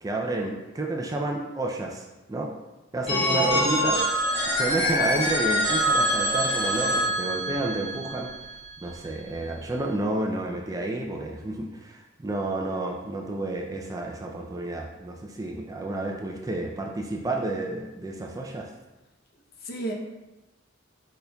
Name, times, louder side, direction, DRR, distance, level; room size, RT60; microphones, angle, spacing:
voice 1, 0.0-2.5 2.9-4.0 4.5-8.3 8.8-18.7, right 2 dB, 20° right, 1 dB, 0.3 m, -30 dB
voice 2, 3.1-3.7 19.6-19.9, right 1 dB, 50° left, 0 dB, 0.7 m, -33 dB
Telephone, 3.1-8.8, equal, 30° left, 1.0 m, -25 dB
5.0 x 4.4 x 2.2 m, 1.1 s
head